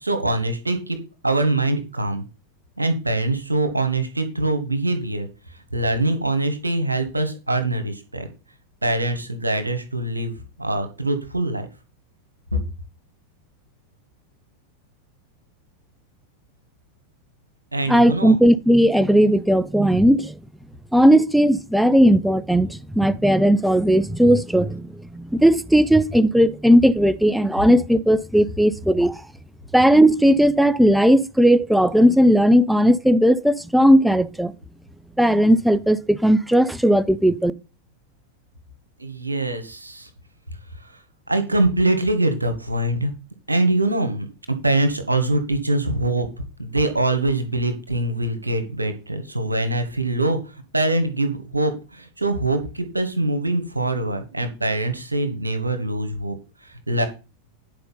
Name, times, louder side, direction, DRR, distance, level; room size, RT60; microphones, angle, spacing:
voice 1, 0.0-1.0 1.2-2.2 2.8-5.3 5.7-8.3 8.8-11.7 12.5-12.6 17.7-18.4 39.0-40.1 41.3-43.1 43.5-46.3 46.6-50.4 50.7-56.4 56.6-57.0, right 2 dB, 80° right, 1.8 m, -23 dB
voice 2, 17.9-20.3 20.9-29.2 29.7-34.5 35.2-37.5, equal, ahead, 0.5 m, -17 dB
10.0 x 5.0 x 5.6 m
figure-of-eight pair, 90°, 0 cm